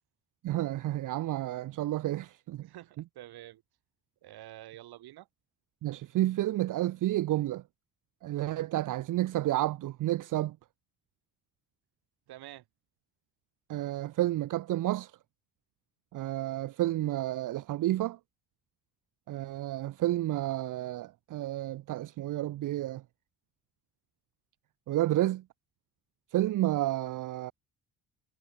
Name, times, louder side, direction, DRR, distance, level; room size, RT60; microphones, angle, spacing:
voice 1, 0.4-2.7 5.8-7.6 8.2-10.6 13.7-15.1 16.1-18.2 19.3-23.0 24.9-25.4 26.3-27.5, right 15 dB, 55° right, 0.6 m, -30 dB
voice 2, 2.6-3.6 4.2-5.3 12.3-12.6, right 14 dB, 80° right, 2.8 m, -48 dB
cardioid pair, 120°, 38 cm